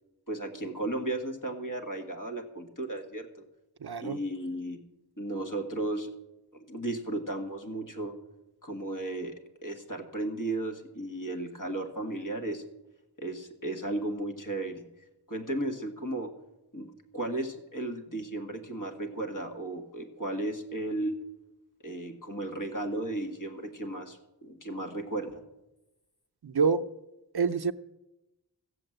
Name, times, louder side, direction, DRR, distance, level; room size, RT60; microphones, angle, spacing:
voice 1, 0.3-3.5 4.0-4.8 5.2-6.1 6.5-8.1 8.6-9.3 9.6-12.6 13.2-14.8 15.3-16.3 16.7-21.2 21.8-25.4, right 1 dB, 45° left, 2 dB, 2.0 m, -35 dB
voice 2, 3.8-4.2 26.4-26.8 27.3-27.7, right 5 dB, 60° right, 12 dB, 0.6 m, -26 dB
15.5 x 7.7 x 7.8 m, 0.96 s
wide cardioid pair, 40°, 43 cm